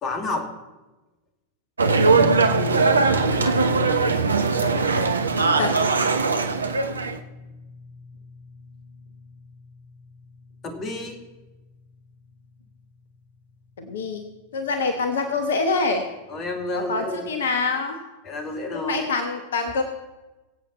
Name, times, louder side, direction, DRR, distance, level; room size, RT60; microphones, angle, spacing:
voice 1, 0.0-0.5 10.6-11.2 16.3-17.3 18.2-19.0, left 2 dB, 30° left, 5 dB, 2.3 m, -30 dB
sound 1, 1.8-7.2, right 4 dB, 75° right, 0.9 m, -20 dB
sound 2, 2.0-14.2 14.5-14.7 16.4-16.5, left 3 dB, 90° right, 2.4 m, -39 dB
voice 2, 2.5-3.5 4.5-4.7 5.3-5.9 13.8-14.2 14.5-16.1 16.7-18.0 18.7-19.8, left 3 dB, 65° left, 7 dB, 1.2 m, -26 dB
22.5 x 8.4 x 4.3 m, 1.1 s
figure-of-eight pair, 90°, 0 cm